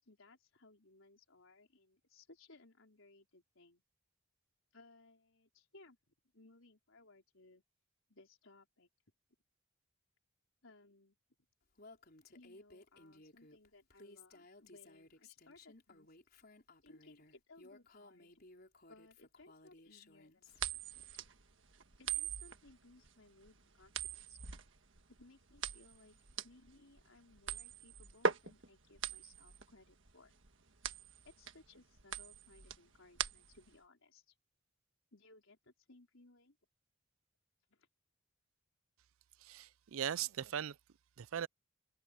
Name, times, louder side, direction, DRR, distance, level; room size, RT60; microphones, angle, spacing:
voice 1, 0.0-3.8 4.7-6.0 6.3-7.6 8.1-8.9 10.6-11.2 12.3-16.1 16.8-18.4 18.9-21.2 22.0-24.4 25.2-30.4 31.2-34.4 35.1-36.6 37.7-37.9, left 2 dB, 70° left, 4.4 m, -63 dB
Female speech woman speaking, 11.8-20.6, left 2 dB, 45° left, 4.6 m, -59 dB
sound 1, 20.5-33.7, right 6 dB, 65° right, 1.5 m, -41 dB
voice 2, 39.4-40.8 41.2-41.5, right 9 dB, 80° right, 0.5 m, -39 dB
head